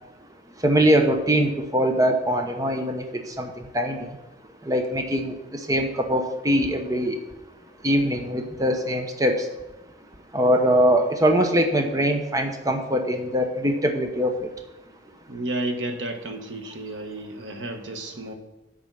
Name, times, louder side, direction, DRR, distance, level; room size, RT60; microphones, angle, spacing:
voice 1, 0.6-3.0 3.4-3.5 3.7-4.1 4.7-5.3 5.7-7.2 7.8-9.3 10.3-14.3, equal, 20° right, 5 dB, 0.9 m, -22 dB
voice 2, 15.3-18.3, right 1 dB, 80° right, 5 dB, 1.3 m, -32 dB
8.6 x 5.2 x 7.5 m, 1.0 s
head